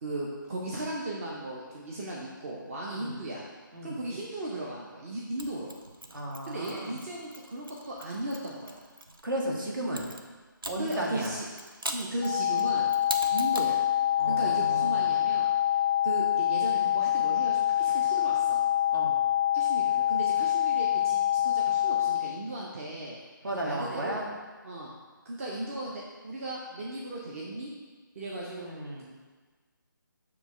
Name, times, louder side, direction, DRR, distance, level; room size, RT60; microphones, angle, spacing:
voice 1, 0.0-3.5 3.8-5.7 6.5-8.8 10.8-11.4 11.9-12.9 13.3-13.8 14.3-15.5 16.0-18.6 19.5-23.2 23.6-24.2 24.6-24.9 25.2-27.7 28.1-28.6, right 1 dB, 40° right, -4 dB, 0.8 m, -36 dB
voice 2, 2.9-3.2 3.7-4.0 6.1-7.0 9.2-10.1 10.7-11.3 14.2-15.1 18.9-19.1 23.4-24.3 28.4-29.0, right 1 dB, 70° right, -2 dB, 1.7 m, -34 dB
Mechanisms, 5.4-9.2 9.9-13.8, right 1 dB, 90° right, 0.7 m, -41 dB
sound 1, 12.2-22.2, left 11 dB, 20° left, 0.4 m, -26 dB
7.1 x 3.2 x 5.5 m, 1.4 s
figure-of-eight pair, 150°, 11 cm